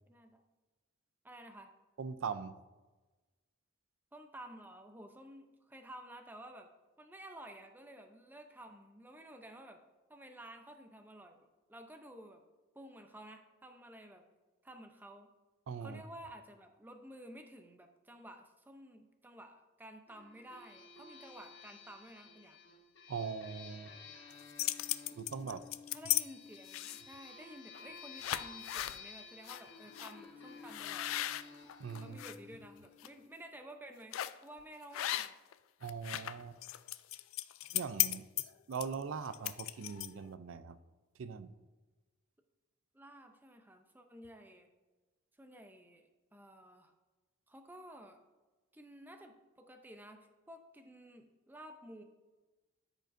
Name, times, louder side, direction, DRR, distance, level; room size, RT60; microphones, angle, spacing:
voice 1, 0.1-0.4 1.2-1.7 4.1-6.7 7.0-9.8 10.1-11.4 11.7-12.4 12.7-14.2 14.6-15.3 15.8-22.6 25.4-25.6 25.9-31.3 32.0-35.3 42.9-44.7 45.4-46.9 47.5-48.2 48.7-52.0, right 1 dB, 10° right, 6 dB, 0.6 m, -53 dB
voice 2, 2.0-2.5 15.7-16.0 23.1-23.9 25.2-25.6 31.8-32.2 35.8-36.6 37.7-38.2 38.7-40.8 41.2-41.5, right 6 dB, 80° right, 13 dB, 0.4 m, -41 dB
sound 1, 20.1-33.3, left 5 dB, 60° left, 1.1 m, -53 dB
sound 2, 24.3-26.2 26.7-27.2 27.7-27.9 28.2-29.0 29.5-29.6 30.0-30.1 30.7-32.4 32.8-33.1 34.1-34.4 34.9-35.5 35.8-40.3, left 15 dB, 85° left, 0.3 m, -36 dB
13.5 x 5.1 x 2.6 m, 1.2 s
head